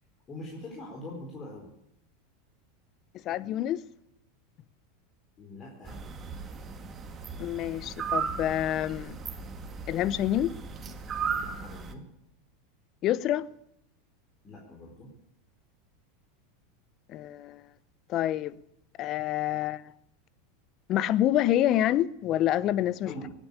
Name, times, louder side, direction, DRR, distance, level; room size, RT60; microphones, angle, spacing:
voice 1, 0.3-1.7 5.4-6.0 11.3-12.0 14.4-15.1 23.0-23.3, left 1 dB, 30° left, 4.3 m, -43 dB
voice 2, 3.2-3.8 7.4-9.2 9.9-10.5 13.0-13.5 17.1-17.6 18.1-18.6 19.0-19.8 20.9-23.1, left 12 dB, 45° left, 0.7 m, -27 dB
sound 1, 5.9-11.9, right 6 dB, 30° right, 2.0 m, -36 dB
17.5 x 9.1 x 8.9 m
hypercardioid pair, 100°, 0 cm